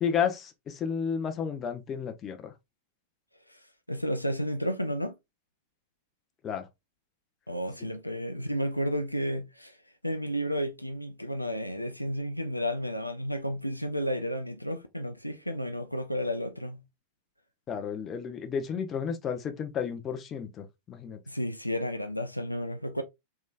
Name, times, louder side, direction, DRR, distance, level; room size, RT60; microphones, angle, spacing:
voice 1, 0.0-2.5 6.4-6.7 17.7-21.2, left 7 dB, 25° left, 0.7 m, -32 dB
voice 2, 3.9-5.1 7.5-9.8 10.0-16.8 21.3-23.0, equal, 90° left, 0.4 m, -32 dB
3.4 x 3.1 x 2.4 m
figure-of-eight pair, 90°, 0 cm